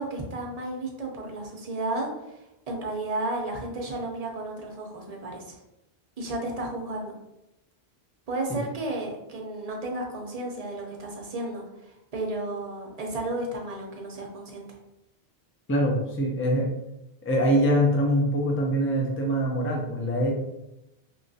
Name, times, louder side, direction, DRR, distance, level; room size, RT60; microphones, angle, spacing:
voice 1, 0.0-2.4 2.7-5.6 6.2-7.1 8.3-11.6 12.1-14.7, right 2 dB, 40° right, 0 dB, 0.7 m, -33 dB
voice 2, 15.7-16.7 17.2-20.3, equal, 20° left, -1 dB, 0.4 m, -24 dB
3.0 x 3.0 x 2.7 m, 0.89 s
omnidirectional pair, 1.0 m